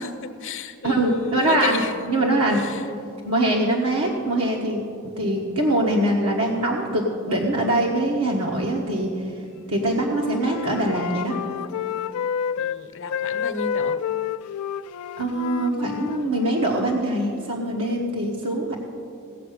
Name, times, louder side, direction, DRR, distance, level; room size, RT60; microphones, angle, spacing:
voice 1, 0.0-1.9 2.6-2.8 12.6-14.0, left 4 dB, 60° left, 9 dB, 0.8 m, -33 dB
voice 2, 0.8-1.8 2.1-2.6 3.2-9.3 9.7-11.4 15.2-18.8, right 1 dB, 85° right, -2 dB, 1.3 m, -23 dB
Wind instrument woodwind instrument, 9.7-12.8 13.1-16.9, left 7 dB, 90° left, 0.3 m, -29 dB
17.5 x 7.6 x 6.6 m, 2.5 s
head